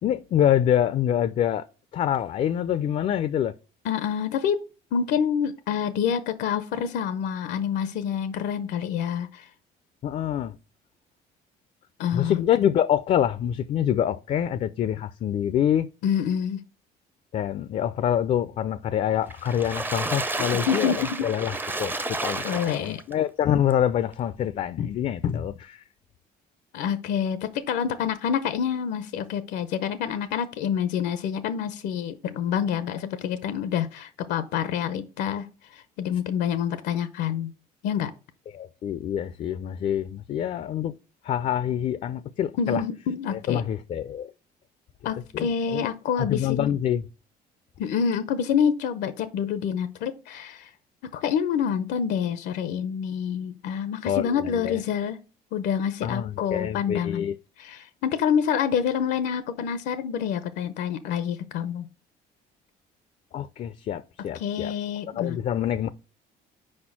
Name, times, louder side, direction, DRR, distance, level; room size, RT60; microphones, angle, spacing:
voice 1, 0.0-1.6 1.9-3.5 10.0-10.5 12.1-15.9 17.3-21.5 21.8-25.8 38.5-40.9 41.2-42.8 43.3-44.3 45.3-45.9 46.2-47.0 54.0-54.8 56.0-57.4 63.3-64.7 65.1-65.9, left 10 dB, 45° left, 0.4 m, -26 dB
voice 2, 3.8-4.6 4.9-9.4 12.0-12.4 16.0-16.6 20.4-21.3 22.1-23.0 26.7-35.5 35.7-37.5 37.8-38.1 42.6-43.7 45.0-46.8 47.8-50.7 51.1-55.2 55.5-57.3 57.6-61.9 64.3-65.4, left 8 dB, 85° left, 0.6 m, -27 dB
Water / Splash splatter, 19.3-23.1 23.7-23.8 24.1-24.2, right 2 dB, 10° right, 0.5 m, -31 dB
4.8 x 4.3 x 5.8 m
cardioid pair, 110°, 17 cm